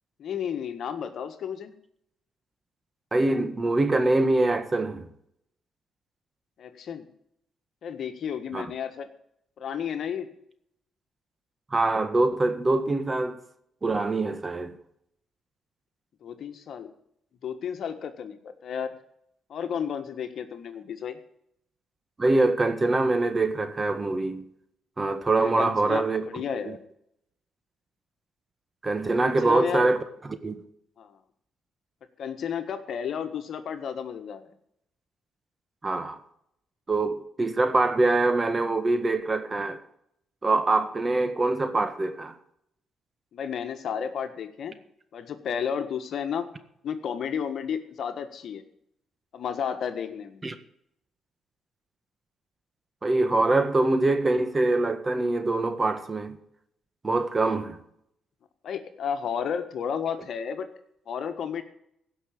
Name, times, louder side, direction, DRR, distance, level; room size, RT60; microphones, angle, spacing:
voice 1, 0.2-1.7 6.6-7.1 7.8-9.1 9.6-10.3 16.2-16.9 17.4-18.9 19.5-21.2 25.4-26.8 29.2-29.9 31.0-31.2 32.2-34.4 43.3-44.8 45.1-46.5 46.8-48.6 49.3-50.4 58.6-60.7 61.1-61.6, left 7 dB, 65° left, 1.5 m, -32 dB
voice 2, 3.1-5.1 8.5-8.6 11.7-13.4 13.8-14.8 22.2-24.4 25.0-26.8 28.8-30.0 30.3-30.6 35.8-36.2 36.9-39.8 40.4-42.3 50.4-50.5 53.0-56.4 57.0-57.8, right 2 dB, 30° right, 1.6 m, -24 dB
16.0 x 6.1 x 8.8 m
supercardioid pair, 70°, 0 cm